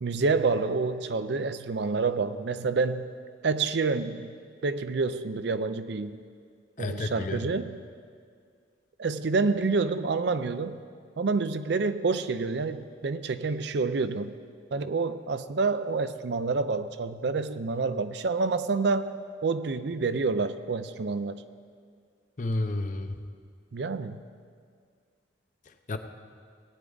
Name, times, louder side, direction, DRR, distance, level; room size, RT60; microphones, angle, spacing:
voice 1, 0.0-3.1 3.4-4.4 4.6-6.2 6.8-7.8 9.0-10.8 11.2-14.3 14.7-19.1 19.4-21.4 23.7-24.2, right 4 dB, 60° right, 12 dB, 0.5 m, -28 dB
voice 2, 6.8-7.4 22.4-23.2 25.9-26.0, left 2 dB, 40° left, 7 dB, 0.6 m, -30 dB
18.5 x 9.1 x 3.9 m, 2.1 s
head